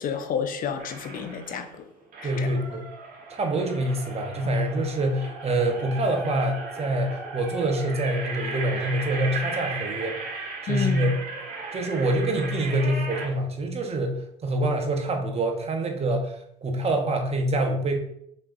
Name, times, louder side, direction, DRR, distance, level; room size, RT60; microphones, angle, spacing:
voice 1, 0.0-1.8 2.2-2.5 10.7-11.1, left 7 dB, 50° left, 0.6 m, -30 dB
sound 1, 0.8-1.7 2.1-13.3, right 3 dB, 55° right, 1.6 m, -36 dB
voice 2, 2.2-2.8 3.4-10.2 10.6-11.1 11.7-18.0, right 1 dB, 35° right, 0.9 m, -26 dB
5.4 x 3.6 x 2.7 m
supercardioid pair, 85°, 18 cm